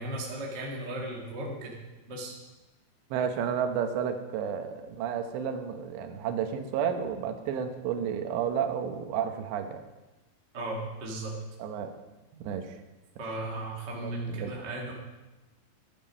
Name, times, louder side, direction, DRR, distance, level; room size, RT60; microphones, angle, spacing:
voice 1, 0.0-1.8 2.1-2.3 10.5-11.3 13.2-14.9, right 1 dB, 40° right, -3 dB, 1.6 m, -36 dB
voice 2, 3.1-9.8 11.6-11.9 12.4-12.7 14.0-14.5, right 8 dB, 90° right, 7 dB, 3.3 m, -31 dB
12.0 x 11.0 x 5.5 m, 1.1 s
omnidirectional pair, 4.9 m